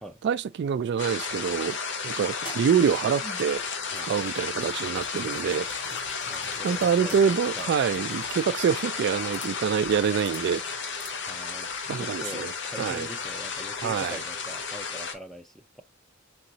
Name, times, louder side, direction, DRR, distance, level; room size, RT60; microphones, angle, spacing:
voice 1, 0.2-1.8 2.0-3.6 4.0-5.7 6.6-10.6 11.9-12.5 12.8-13.1 13.8-14.2, right 7 dB, 55° right, 0.3 m, -26 dB
sound 1, 0.7-9.4, left 2 dB, 85° left, 2.4 m, -52 dB
sound 2, 1.0-15.1, left 5 dB, 60° left, 0.8 m, -33 dB
sound 3, 2.1-11.5, equal, 25° left, 1.8 m, -48 dB
voice 2, 6.3-7.7 11.3-15.8, equal, ahead, 0.5 m, -43 dB
4.0 x 3.7 x 2.8 m
head